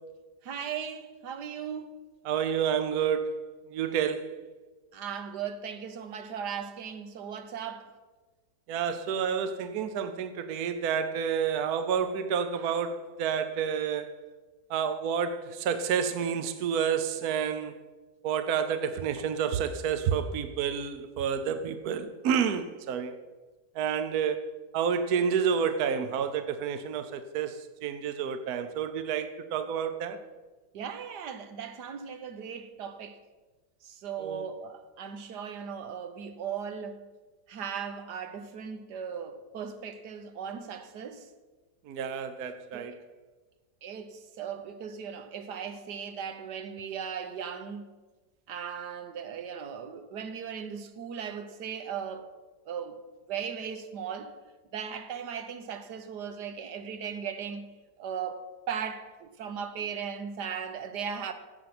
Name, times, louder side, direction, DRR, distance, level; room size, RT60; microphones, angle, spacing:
voice 1, 0.4-1.9 4.9-7.9 30.7-33.2 33.8-37.0 37.5-41.3 42.7-42.9 43.8-47.9 48.5-52.4 52.7-53.0 53.3-54.3 54.7-57.7 58.0-61.3, right 7 dB, 85° right, 1.5 m, -37 dB
voice 2, 2.2-3.4 3.7-4.3 8.7-14.1 14.7-17.7 18.2-23.1 23.7-24.5 24.7-30.2 34.2-34.4 41.9-42.9, right 7 dB, 70° right, 1.2 m, -29 dB
15.0 x 8.2 x 6.0 m
omnidirectional pair, 1.7 m